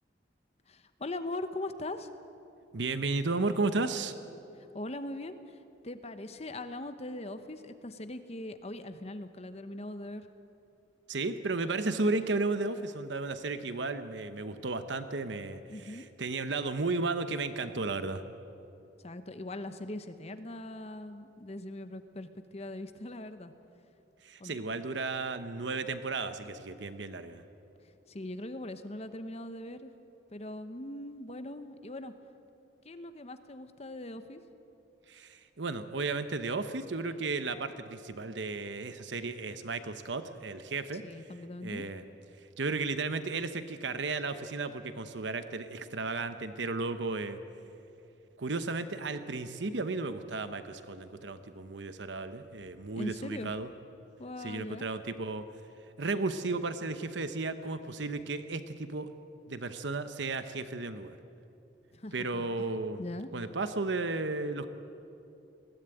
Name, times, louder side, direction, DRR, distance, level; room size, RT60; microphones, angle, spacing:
voice 1, 0.7-2.1 4.6-5.6 5.8-10.3 15.7-16.1 19.0-23.5 24.4-24.6 27.8-29.9 30.3-32.1 32.8-34.4 41.0-41.9 52.9-53.5 54.2-54.9 61.9-63.3, left 1 dB, 35° left, 10 dB, 1.0 m, -41 dB
voice 2, 2.7-4.1 11.1-18.2 24.2-27.4 35.1-41.3 41.6-42.0 42.6-47.4 48.4-53.7 54.4-55.5 56.0-59.1 59.5-61.2 62.1-63.0 63.3-64.7, right 3 dB, 80° right, 10 dB, 1.0 m, -34 dB
20.5 x 16.5 x 9.2 m, 2.7 s
head